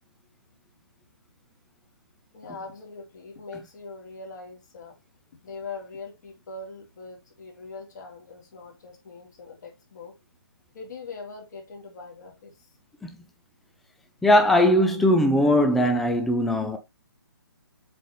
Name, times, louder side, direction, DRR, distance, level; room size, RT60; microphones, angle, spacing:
voice 1, 2.3-5.0 5.4-10.2 10.7-12.7, left 4 dB, 45° left, 3.3 m, -41 dB
voice 2, 14.2-16.8, left 1 dB, ahead, 0.4 m, -20 dB
7.4 x 4.2 x 3.3 m
hypercardioid pair, 160°, 13 cm